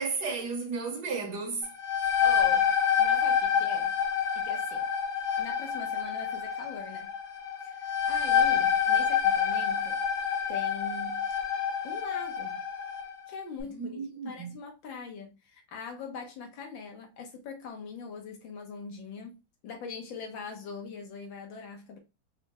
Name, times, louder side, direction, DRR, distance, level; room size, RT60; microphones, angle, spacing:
voice 1, 0.0-1.7 13.7-14.6, right 4 dB, 65° right, 1.2 m, -33 dB
sound 1, 1.6-13.1, left 7 dB, 35° left, 1.0 m, -27 dB
voice 2, 2.2-2.7 3.0-3.9 4.3-4.9 5.4-7.1 7.6-10.0 10.5-11.2 11.8-12.6 13.3-14.0 14.2-19.4 19.6-22.0, left 5 dB, 75° left, 1.7 m, -42 dB
4.3 x 2.2 x 2.8 m
omnidirectional pair, 2.1 m